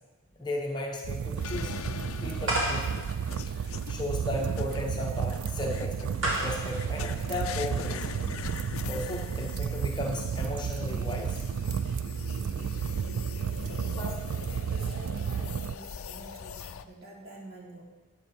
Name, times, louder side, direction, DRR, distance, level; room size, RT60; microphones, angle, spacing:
voice 1, 0.4-1.8 2.2-3.1 3.9-6.1 6.4-8.1 8.8-11.4 14.0-14.1, left 1 dB, 20° left, 0 dB, 1.0 m, -35 dB
sound 1, 1.0-15.7, right 7 dB, 75° right, 0.3 m, -32 dB
sound 2, 1.4-16.8, left 6 dB, 75° left, 0.5 m, -42 dB
sound 3, 2.4-8.1, right 1 dB, 60° right, 2.3 m, -34 dB
voice 2, 13.5-17.8, right 1 dB, 45° right, -2 dB, 2.4 m, -48 dB
12.0 x 8.9 x 4.4 m, 1.2 s
head